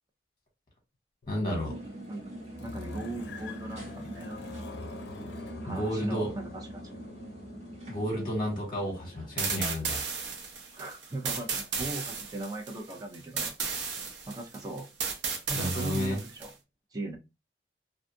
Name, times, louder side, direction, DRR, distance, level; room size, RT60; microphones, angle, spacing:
sound 1, 1.2-9.8, left 2 dB, 70° left, 0.4 m, -46 dB
voice 1, 1.3-1.7 5.6-6.3 7.9-10.0 15.5-16.2, equal, 25° left, 1.0 m, -31 dB
sound 2, 1.5-12.5, right 1 dB, 40° right, 1.2 m, -45 dB
voice 2, 2.1-4.4 5.6-6.8 10.8-13.6 14.3-14.9 15.5-16.5 16.9-17.2, right 2 dB, 20° right, 0.5 m, -38 dB
sound 3, 9.4-16.5, right 5 dB, 80° right, 0.6 m, -34 dB
2.5 x 2.3 x 2.6 m
head